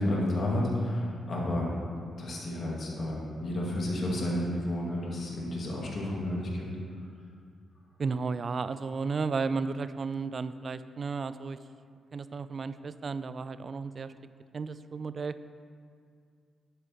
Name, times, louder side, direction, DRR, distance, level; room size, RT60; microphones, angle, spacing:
voice 1, 0.0-1.7 2.2-6.7, left 1 dB, 55° left, -4 dB, 2.3 m, -31 dB
voice 2, 8.0-11.6 12.1-14.1 14.5-15.3, right 4 dB, 50° right, 13 dB, 0.4 m, -33 dB
11.0 x 8.2 x 3.0 m, 2.2 s
hypercardioid pair, 40°, 0 cm